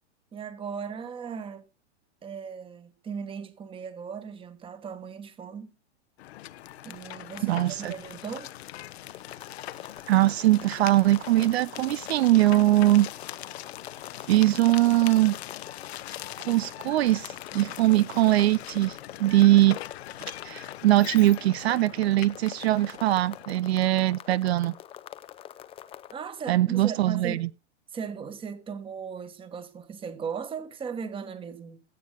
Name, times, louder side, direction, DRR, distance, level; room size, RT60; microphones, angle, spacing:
voice 1, 0.3-1.7 2.2-5.7 6.8-8.5 17.8-18.1 26.1-27.5 27.9-31.8, right 6 dB, 15° right, 1.5 m, -37 dB
sound 1, 6.2-23.4, left 14 dB, 65° left, 1.0 m, -42 dB
voice 2, 7.4-7.9 10.1-13.1 14.3-15.4 16.1-16.2 16.4-19.8 20.2-24.7 26.5-27.5, right 15 dB, 65° right, 0.6 m, -22 dB
sound 2, 9.1-26.1, left 11 dB, 15° left, 0.7 m, -45 dB
17.0 x 11.5 x 2.2 m
hypercardioid pair, 145°, 34 cm